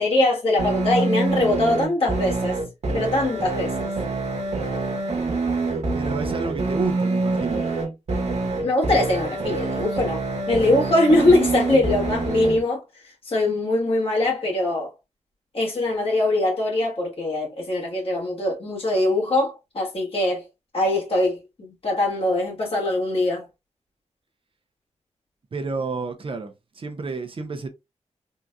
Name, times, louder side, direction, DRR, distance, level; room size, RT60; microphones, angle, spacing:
voice 1, 0.0-2.6 2.9-3.9 8.6-12.8 13.3-14.9 15.5-20.4 20.7-23.5, left 2 dB, 55° left, 1.9 m, -22 dB
sound 1, 0.6-12.6, right 3 dB, 70° right, 1.1 m, -26 dB
voice 2, 5.9-7.6 25.5-27.7, right 4 dB, 50° right, 0.6 m, -30 dB
3.7 x 2.8 x 2.3 m
wide cardioid pair, 105°, 12 cm